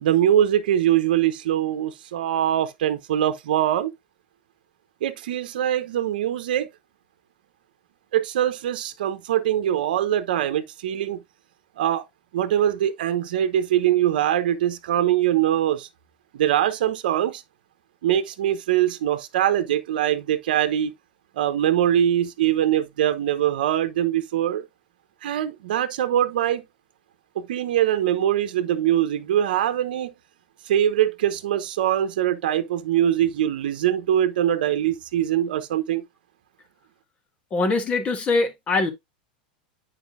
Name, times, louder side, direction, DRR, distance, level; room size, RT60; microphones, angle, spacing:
voice 1, 0.0-3.9 5.0-6.7 8.1-11.2 11.8-12.0 12.3-15.9 16.3-17.4 18.0-20.9 21.4-24.6 25.2-26.6 27.4-30.1 30.7-36.0, right 11 dB, 80° right, 0.9 m, -22 dB
voice 2, 37.5-38.9, left 3 dB, 25° left, 1.7 m, -22 dB
9.4 x 5.0 x 2.5 m
supercardioid pair, 130°, 5 cm